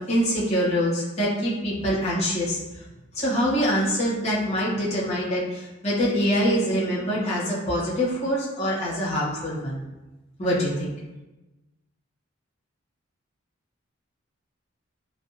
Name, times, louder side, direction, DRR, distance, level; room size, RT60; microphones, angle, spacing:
voice 1, 0.0-2.6 3.1-9.8 10.4-10.9, equal, 30° left, -8 dB, 0.8 m, -24 dB
2.6 x 2.2 x 2.5 m, 1.1 s
head